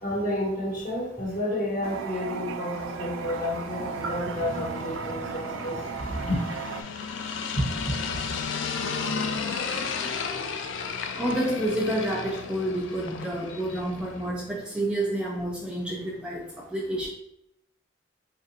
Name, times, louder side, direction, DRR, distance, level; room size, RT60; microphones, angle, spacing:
voice 1, 0.0-5.8 6.1-6.4 7.6-7.9, left 1 dB, 45° left, -5 dB, 1.2 m, -30 dB
Toilet flush, 1.8-6.8, right 6 dB, 85° right, 0.3 m, -35 dB
sound 1, 2.7-14.3, left 5 dB, 75° left, 0.3 m, -34 dB
voice 2, 11.2-16.4 16.7-17.1, right 1 dB, 5° right, -4 dB, 0.4 m, -29 dB
4.1 x 2.5 x 2.6 m, 0.80 s
head